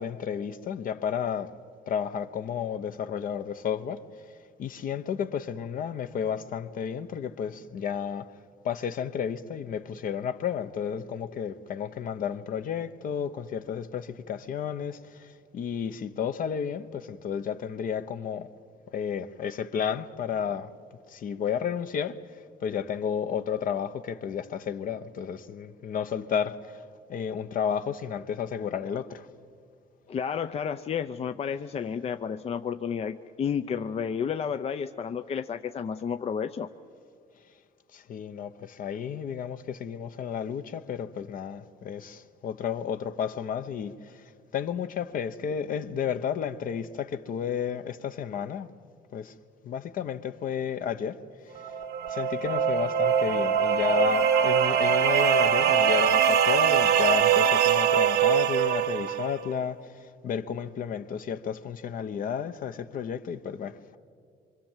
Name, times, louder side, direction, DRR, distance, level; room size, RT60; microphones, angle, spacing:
voice 1, 0.0-1.5 1.9-4.0 4.6-8.3 8.6-18.5 18.9-20.7 21.1-22.2 22.6-26.8 27.1-29.3 37.9-44.2 44.5-48.7 49.1-49.3 49.6-51.2 52.1-64.0, left 8 dB, 55° left, 1.0 m, -32 dB
voice 2, 30.1-36.7, left 7 dB, 35° left, 0.6 m, -31 dB
sound 1, 51.6-59.3, right 8 dB, 75° right, 1.1 m, -23 dB
25.0 x 25.0 x 7.5 m
cardioid pair, 110°, 17 cm